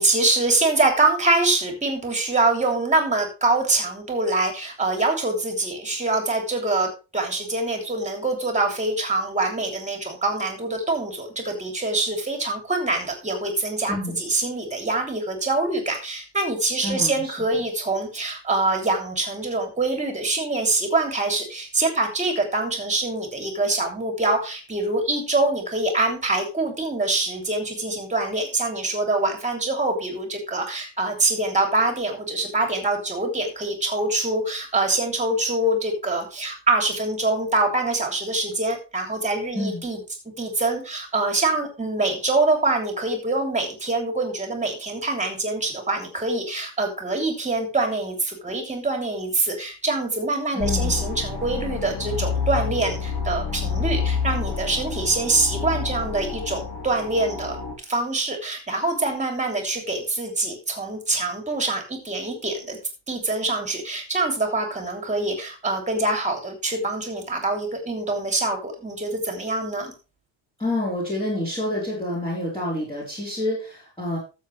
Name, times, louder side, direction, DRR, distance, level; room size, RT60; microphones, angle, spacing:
voice 1, 0.0-40.0 40.4-57.6 57.9-62.8 63.1-69.9, right 2 dB, 15° right, 3 dB, 3.3 m, -24 dB
voice 2, 13.9-14.2 16.8-17.4 39.5-39.8 50.5-51.0 70.6-74.2, left 1 dB, 10° left, -7 dB, 4.4 m, -28 dB
sound 1, 50.6-57.7, left 6 dB, 55° left, 3.6 m, -28 dB
13.0 x 7.6 x 3.3 m, 0.32 s
cardioid pair, 140°, 47 cm